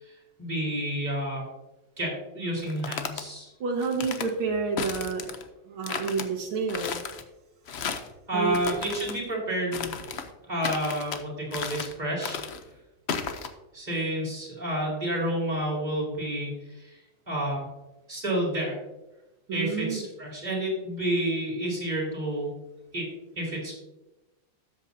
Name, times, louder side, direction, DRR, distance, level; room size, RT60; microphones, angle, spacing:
voice 1, 0.4-1.5 2.0-3.5 8.3-9.9 10.5-12.4 13.7-16.5 16.8-16.9 17.3-17.7 18.1-18.8 19.5-22.5 22.9-23.1 23.4-23.7, right 1 dB, 20° right, -3 dB, 4.0 m, -30 dB
sound 1, 2.6-3.2 3.8-4.3 4.8-5.4 5.8-6.3 6.7-7.2 7.7-8.1 8.5-9.2 9.7-10.3 10.6-11.2 11.5-11.9 12.2-12.6 13.1-13.5, left 6 dB, 85° left, 0.5 m, -34 dB
voice 2, 3.6-5.4 5.7-6.9 8.3-8.7 19.5-20.0, right 5 dB, 90° right, 1 dB, 2.2 m, -29 dB
12.5 x 8.5 x 2.7 m, 0.99 s
omnidirectional pair, 2.2 m